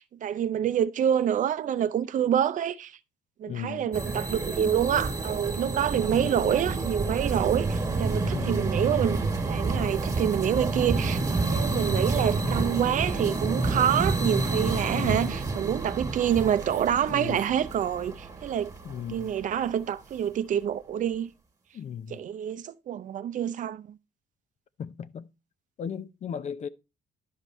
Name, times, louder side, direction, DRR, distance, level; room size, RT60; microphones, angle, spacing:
voice 1, 0.0-2.9 3.4-11.2 11.5-18.7 19.1-21.3 22.1-23.8, right 9 dB, 50° right, 0.6 m, -27 dB
voice 2, 3.5-3.9 6.1-6.6 8.3-8.7 14.9-15.4 17.1-17.4 18.8-19.3 21.7-22.2 24.8-25.3 25.8-26.7, left 8 dB, 40° left, 0.6 m, -37 dB
sound 1, 3.9-19.2, right 3 dB, 20° right, 1.6 m, -29 dB
11.5 x 5.2 x 3.1 m
cardioid pair, 110°, 17 cm